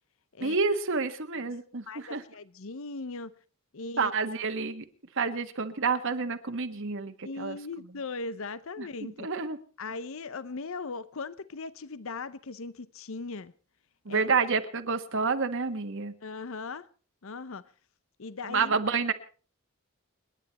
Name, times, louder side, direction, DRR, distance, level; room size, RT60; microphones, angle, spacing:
voice 1, 0.4-2.2 4.0-4.8 5.1-7.6 8.8-9.6 14.0-16.1 18.5-19.1, right 4 dB, 60° right, 1.5 m, -29 dB
voice 2, 1.8-3.3 3.7-4.1 7.2-9.3 9.8-13.5 14.1-14.2 16.2-16.9 17.2-17.6 18.2-18.8, left 3 dB, 65° left, 0.8 m, -38 dB
29.5 x 10.0 x 4.2 m
head